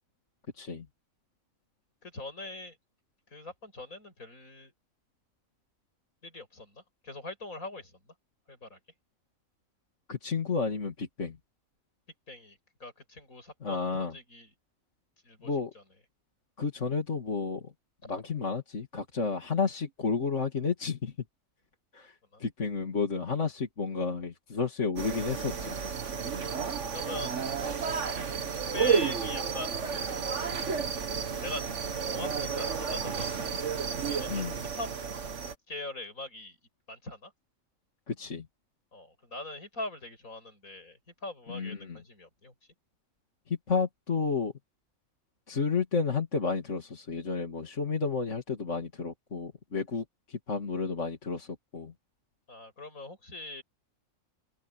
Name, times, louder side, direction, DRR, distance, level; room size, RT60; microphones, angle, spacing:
voice 1, 0.6-0.9 10.1-11.4 13.6-14.1 15.4-15.7 16.6-17.7 18.1-21.1 21.9-25.8 34.3-34.5 38.1-38.5 41.5-42.0 43.5-44.5 45.5-51.9, left 4 dB, 60° left, 2.9 m, -31 dB
voice 2, 2.0-2.8 3.3-4.7 6.2-8.1 8.5-8.8 12.3-14.5 15.2-15.8 18.0-18.2 22.3-22.4 26.9-27.4 28.5-30.4 31.4-31.6 32.0-33.7 34.0-34.9 35.7-36.6 36.9-37.3 38.9-42.5 52.5-53.6, left 2 dB, 80° left, 7.6 m, -42 dB
sound 1, 25.0-35.5, right 6 dB, 60° right, 1.7 m, -32 dB
open air
omnidirectional pair, 1.4 m